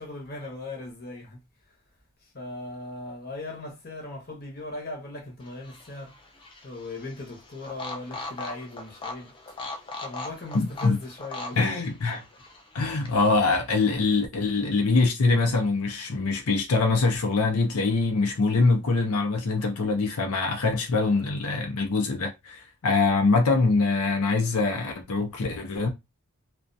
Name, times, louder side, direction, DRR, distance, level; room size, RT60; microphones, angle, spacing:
voice 1, 0.0-1.4 2.2-6.2 6.6-9.3 10.0-11.8, left 2 dB, 45° left, 0.8 m, -38 dB
sound 1, 5.4-13.6, left 2 dB, 20° left, 0.3 m, -40 dB
voice 2, 10.5-11.0 11.6-12.2 12.7-25.9, left 3 dB, 80° left, 0.5 m, -24 dB
2.4 x 2.2 x 2.5 m
head